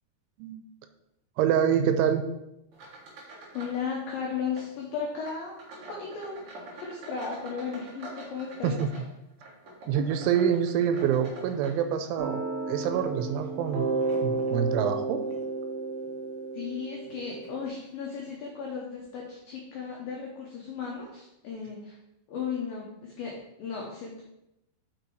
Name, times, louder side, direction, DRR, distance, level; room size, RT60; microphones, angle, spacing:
voice 1, 1.4-2.2 8.6-8.9 9.9-13.9 14.2-15.2, right 8 dB, 90° right, 7 dB, 2.9 m, -26 dB
sound 1, 2.7-3.9 4.1-4.7 5.2-12.3 12.8-14.6 15.2-15.5 16.0-16.1 17.0-17.1 17.4-17.6, right 2 dB, 50° right, 1.8 m, -47 dB
voice 2, 3.5-8.7 16.5-21.9 22.3-24.2, left 6 dB, 80° left, -1 dB, 2.0 m, -35 dB
sound 2, 12.2-17.7, right 3 dB, 70° right, 2.6 m, -32 dB
6.0 x 5.2 x 4.6 m, 0.87 s
omnidirectional pair, 5.3 m